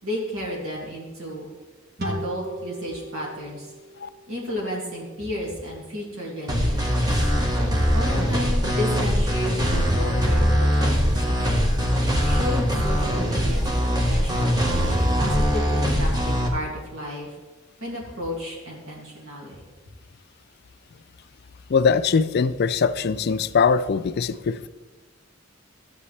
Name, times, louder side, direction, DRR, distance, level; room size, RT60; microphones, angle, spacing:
voice 1, 0.0-1.5 2.0-3.7 4.3-7.3 7.9-11.7 12.2-17.3 17.8-19.6, equal, 75° right, -3 dB, 2.3 m, -33 dB
sound 1, 2.0-5.3, equal, 50° right, 1.5 m, -37 dB
sound 2, 6.5-16.5, equal, 20° right, 1.3 m, -22 dB
voice 2, 21.7-24.7, left 5 dB, 50° left, 13 dB, 0.4 m, -21 dB
14.0 x 7.8 x 3.3 m, 1.3 s
head